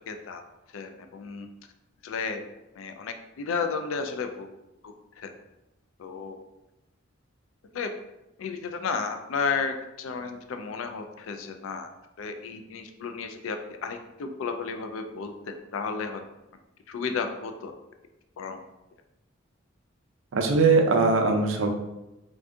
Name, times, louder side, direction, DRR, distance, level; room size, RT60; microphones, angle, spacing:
voice 1, 0.1-0.4 0.7-1.5 2.0-2.4 2.8-4.5 4.8-5.3 6.0-6.4 7.7-7.9 8.4-11.9 12.2-13.6 13.8-16.2 16.9-17.7 18.4-18.6, left 5 dB, 80° left, 6 dB, 0.3 m, -33 dB
voice 2, 20.3-21.7, right 4 dB, 80° right, 4 dB, 0.4 m, -21 dB
2.5 x 2.3 x 3.6 m, 0.96 s
head